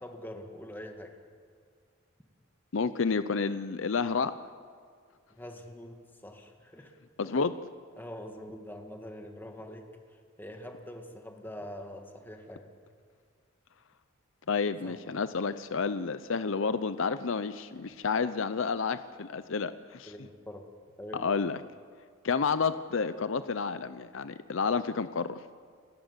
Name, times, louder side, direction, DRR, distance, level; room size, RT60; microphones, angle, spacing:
voice 1, 0.0-1.1 5.4-6.9 8.0-9.8 10.1-12.7 14.8-15.0 20.1-20.6 21.0-21.2, left 1 dB, 10° left, 3 dB, 2.1 m, -44 dB
voice 2, 2.7-4.4 7.2-7.6 14.5-20.1 21.1-21.6 22.2-25.4, left 5 dB, 70° left, 13 dB, 0.6 m, -30 dB
30.0 x 13.0 x 8.1 m, 2.1 s
head